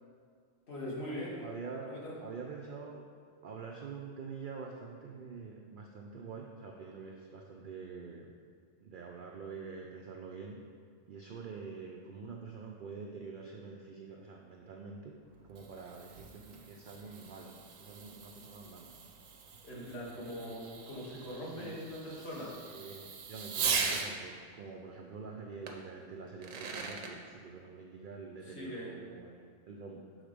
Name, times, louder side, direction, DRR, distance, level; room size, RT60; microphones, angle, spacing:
voice 1, 0.7-1.4 1.9-2.2 19.6-22.6 28.4-28.9, equal, 55° left, -5 dB, 1.5 m, -41 dB
voice 2, 1.4-3.1 3.4-8.3 8.8-10.6 11.1-15.2 15.5-18.9 21.5-21.7 22.6-30.1, right 5 dB, 65° right, 0 dB, 0.5 m, -46 dB
Fireworks, 15.3-24.1 25.7-25.8 26.3-27.1, right 5 dB, 85° right, 1.1 m, -40 dB
6.4 x 3.9 x 5.0 m, 2.1 s
omnidirectional pair, 1.3 m